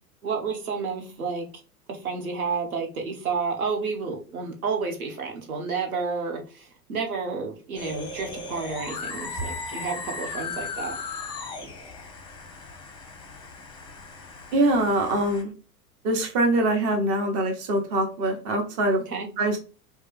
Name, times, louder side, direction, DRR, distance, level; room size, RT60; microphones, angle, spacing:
voice 1, 0.2-1.5 1.9-10.9 19.1-19.3, right 5 dB, 65° right, 2 dB, 1.6 m, -30 dB
sound 1, 7.7-15.4, left 4 dB, 10° left, 0.8 m, -37 dB
voice 2, 14.5-15.5 16.0-19.0 19.4-19.6, right 1 dB, 35° right, 3 dB, 1.3 m, -23 dB
5.0 x 2.4 x 3.4 m, 0.35 s
figure-of-eight pair, 95°, 46 cm